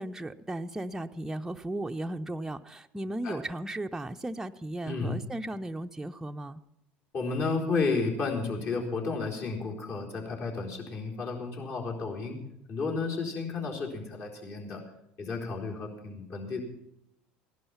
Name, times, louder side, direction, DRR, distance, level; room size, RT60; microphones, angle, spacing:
voice 1, 0.0-6.6, right 1 dB, 10° right, 5 dB, 0.6 m, -36 dB
voice 2, 4.8-5.2 7.1-12.4 12.7-14.8 15.2-16.6, left 4 dB, 55° left, -1 dB, 4.0 m, -32 dB
16.5 x 11.5 x 5.8 m, 0.83 s
hypercardioid pair, 80°, 5 cm